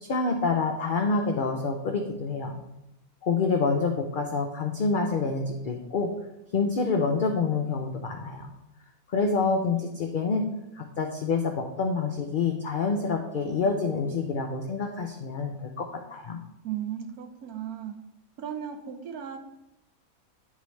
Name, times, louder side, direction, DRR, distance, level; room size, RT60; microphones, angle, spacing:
voice 1, 0.0-2.6 3.2-6.1 6.5-8.5 9.1-10.5 10.8-16.4, left 4 dB, 75° left, 3 dB, 0.4 m, -27 dB
voice 2, 16.6-17.9 18.4-19.4, right 9 dB, 85° right, 5 dB, 1.2 m, -35 dB
9.4 x 3.7 x 3.1 m, 0.91 s
omnidirectional pair, 1.5 m